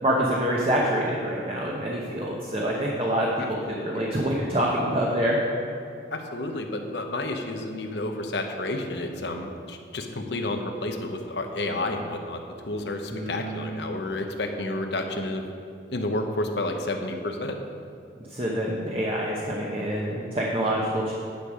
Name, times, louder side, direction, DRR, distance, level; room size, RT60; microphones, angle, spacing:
voice 1, 0.0-5.4 13.1-13.7 18.3-21.1, equal, 30° right, -3 dB, 0.9 m, -26 dB
voice 2, 3.4-4.0 6.1-15.4 15.9-17.6, left 2 dB, 70° left, 4 dB, 0.9 m, -31 dB
10.5 x 6.6 x 5.1 m, 2.5 s
head